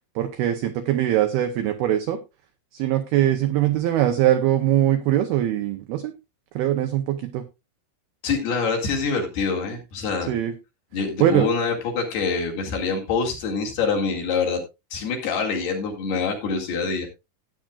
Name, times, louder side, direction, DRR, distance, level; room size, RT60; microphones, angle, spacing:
voice 1, 0.2-2.2 2.7-6.1 6.6-7.4 10.3-10.6 11.2-11.5, right 12 dB, 90° right, 7 dB, 2.1 m, -22 dB
voice 2, 8.2-10.4 10.9-14.6 14.9-17.1, left 5 dB, 60° left, 0 dB, 3.9 m, -25 dB
16.5 x 8.9 x 2.4 m, 0.24 s
omnidirectional pair, 5.6 m